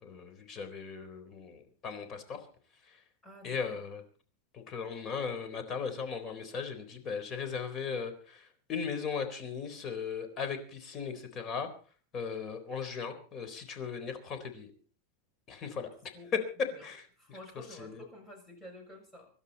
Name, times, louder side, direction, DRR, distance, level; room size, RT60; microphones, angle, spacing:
voice 1, 0.0-2.4 2.9-3.0 3.4-4.0 4.5-11.7 12.1-14.7 15.5-16.1 16.8-17.0 17.8-18.0, left 6 dB, 30° left, 8 dB, 4.0 m, -38 dB
voice 2, 3.2-3.8 16.1-16.3 16.7-16.9 17.2-19.3, left 1 dB, 10° left, 2 dB, 6.9 m, -50 dB
25.5 x 12.0 x 4.2 m, 0.40 s
supercardioid pair, 150°, 0 cm